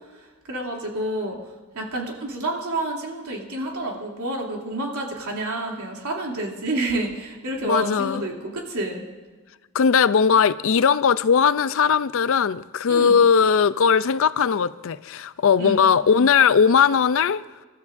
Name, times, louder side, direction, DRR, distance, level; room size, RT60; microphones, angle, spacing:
voice 1, 0.5-1.4 1.7-9.0 12.9-13.2 15.6-15.9, right 2 dB, 80° right, 2.9 m, -29 dB
voice 2, 7.6-8.2 9.7-17.4, left 6 dB, 60° left, 0.4 m, -19 dB
27.5 x 13.0 x 2.6 m
head